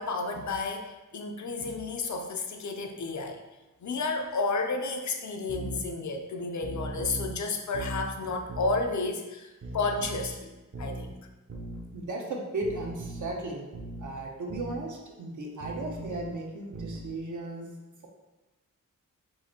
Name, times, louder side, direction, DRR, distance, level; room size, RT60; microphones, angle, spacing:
voice 1, 0.0-3.4 3.8-11.1, left 3 dB, 60° left, 4 dB, 0.5 m, -32 dB
sound 1, 5.5-5.8 6.6-7.3 7.7-8.1 8.5-8.8 9.6-10.3 10.7-11.1 11.5-11.8 12.6-13.3 13.7-14.1 14.5-14.8 15.6-16.3 16.7-17.1, right 2 dB, 40° right, 0.7 m, -38 dB
voice 2, 11.9-13.7 14.0-17.7, right 2 dB, 65° right, 0 dB, 0.9 m, -35 dB
4.7 x 2.5 x 4.3 m, 1.1 s
wide cardioid pair, 155°, 32 cm